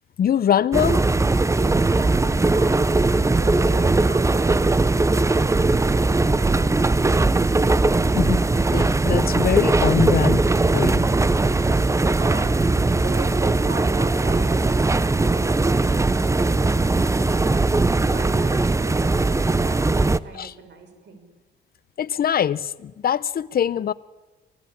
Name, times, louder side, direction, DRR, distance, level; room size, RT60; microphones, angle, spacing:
voice 1, 0.2-1.0 8.2-8.4 8.7-10.5 10.7-11.1 20.3-20.5 22.0-23.9, left 9 dB, 50° left, 0.8 m, -23 dB
sound 1, 0.7-20.2, right 3 dB, 15° right, 0.7 m, -19 dB
voice 2, 1.8-7.0 11.8-12.6 12.9-15.0 15.3-21.3, right 3 dB, 60° right, 6.1 m, -40 dB
25.5 x 19.0 x 8.7 m
cardioid pair, 90°, 20 cm